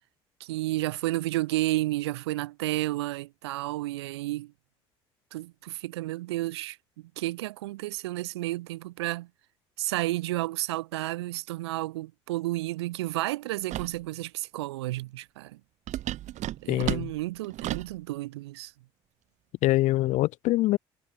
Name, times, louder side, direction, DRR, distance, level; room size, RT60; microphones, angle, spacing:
voice 1, 0.4-4.5 5.3-9.3 9.8-15.6 16.6-18.7, right 18 dB, 80° right, 2.7 m, -31 dB
sound 1, 13.7-14.0 15.9-18.0, right 14 dB, 60° right, 4.0 m, -33 dB
voice 2, 16.7-17.1 19.6-20.8, left 17 dB, 65° left, 0.9 m, -24 dB
hypercardioid pair, 60°, 14 cm